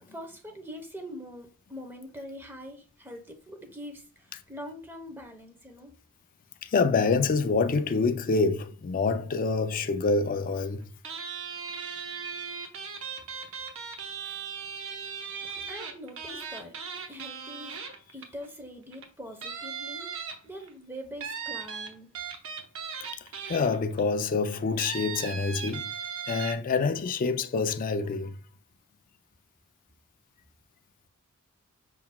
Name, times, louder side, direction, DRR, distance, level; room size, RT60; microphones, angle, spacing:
voice 1, 0.1-5.9 15.4-16.8 17.1-17.8 18.1-20.1 20.4-22.1, equal, 10° right, 0.9 m, -43 dB
voice 2, 6.6-10.9 23.5-25.9 26.3-28.4, left 4 dB, 40° left, 0.4 m, -26 dB
sound 1, 11.0-18.5 18.9-19.1 19.4-20.7 21.2-24.0 24.8-26.5, right 6 dB, 65° right, 0.8 m, -37 dB
5.5 x 3.8 x 2.2 m
head